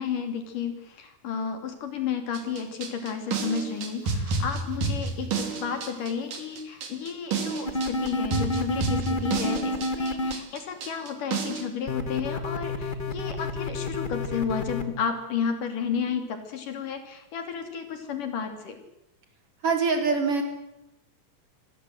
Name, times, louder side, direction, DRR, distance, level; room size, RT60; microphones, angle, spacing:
voice 1, 0.0-18.8, left 6 dB, 70° left, 7 dB, 4.5 m, -32 dB
sound 1, 2.3-11.7, right 4 dB, 70° right, 4.6 m, -30 dB
sound 2, 7.7-10.3 11.9-14.8, left 2 dB, 25° left, 1.0 m, -29 dB
voice 2, 19.6-20.4, right 4 dB, 40° right, 5 dB, 4.5 m, -23 dB
26.0 x 20.5 x 7.9 m, 0.88 s
omnidirectional pair, 3.8 m